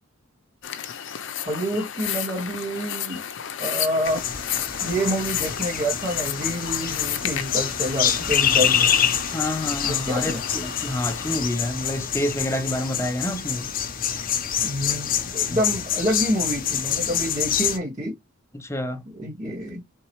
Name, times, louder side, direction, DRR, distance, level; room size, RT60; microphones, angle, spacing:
sound 1, 0.6-11.4, left 9 dB, 60° left, 0.6 m, -33 dB
voice 1, 1.5-3.2 3.6-4.3 4.8-8.9 9.8-10.4 14.6-18.2 19.1-19.8, equal, 35° right, 2.2 m, -27 dB
sound 2, 4.1-17.8, left 9 dB, 45° left, 0.9 m, -26 dB
voice 2, 9.3-13.7 15.5-15.6 18.5-19.0, left 1 dB, 15° left, 0.6 m, -28 dB
4.5 x 3.7 x 3.0 m
head